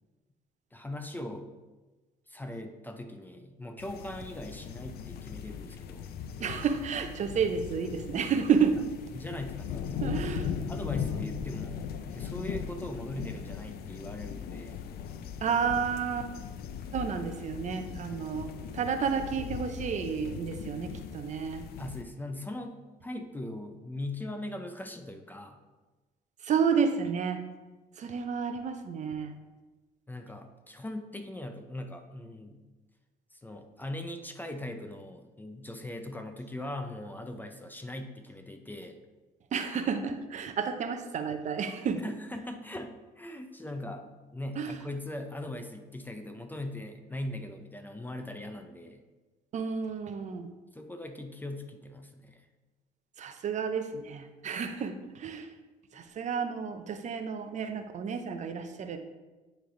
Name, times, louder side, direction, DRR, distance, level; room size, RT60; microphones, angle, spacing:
voice 1, 0.7-1.5 2.3-6.1 9.1-10.2 10.6-14.8 18.1-18.3 21.8-22.8 23.0-25.6 30.1-32.7 33.3-39.0 42.0-44.0 44.3-49.0 50.7-52.5 55.9-56.0, left 1 dB, 10° left, 5 dB, 0.5 m, -40 dB
sound 1, 3.8-22.0, left 7 dB, 65° left, 0.5 m, -39 dB
voice 2, 6.4-8.8 10.0-10.5 15.4-16.3 16.9-21.7 26.4-27.4 28.0-29.3 39.5-42.1 44.6-44.8 49.5-50.5 53.2-55.5 55.9-59.0, right 6 dB, 45° right, 8 dB, 0.6 m, -31 dB
9.2 x 3.3 x 3.8 m, 1.2 s
cardioid pair, 110°, 17 cm